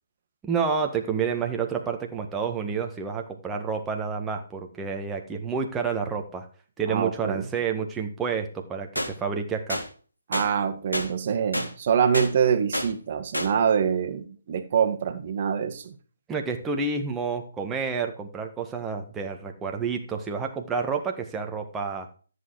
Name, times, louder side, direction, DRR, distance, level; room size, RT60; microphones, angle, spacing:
voice 1, 0.4-6.5 6.8-9.8 16.3-22.1, right 5 dB, 10° right, 3 dB, 1.6 m, -29 dB
voice 2, 6.9-7.5 10.3-16.0, right 7 dB, 35° right, 6 dB, 1.9 m, -25 dB
sound 1, 9.0-9.1 9.7-9.9 10.3-10.5 10.9-11.1 11.5-11.7 12.1-12.3 12.7-12.9 13.3-13.5, left 1 dB, 85° left, 3.4 m, -28 dB
14.0 x 8.3 x 4.8 m, 0.40 s
figure-of-eight pair, 140°, 0 cm